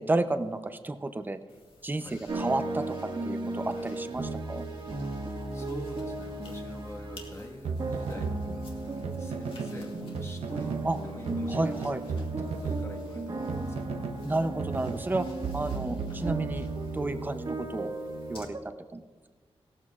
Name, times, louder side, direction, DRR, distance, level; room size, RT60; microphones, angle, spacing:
voice 1, 0.0-1.4 1.8-4.7 10.8-11.0 11.5-12.0 14.2-15.3 15.5-16.7 16.9-17.9 18.3-18.6 18.9-19.0, right 2 dB, 20° right, 9 dB, 0.6 m, -31 dB
sound 1, 1.5-18.4, left 3 dB, 60° left, 2.0 m, -55 dB
sound 2, 2.3-18.6, right 2 dB, 55° right, 1.6 m, -36 dB
voice 2, 5.5-8.6 8.9-10.8 11.0-14.1, left 1 dB, 25° left, 2 dB, 1.5 m, -46 dB
sound 3, 7.6-9.8 10.1-10.9 11.3-14.3 14.6-17.0, right 5 dB, 85° right, 0.7 m, -36 dB
18.0 x 13.5 x 2.4 m, 1.4 s
wide cardioid pair, 155°, 10 cm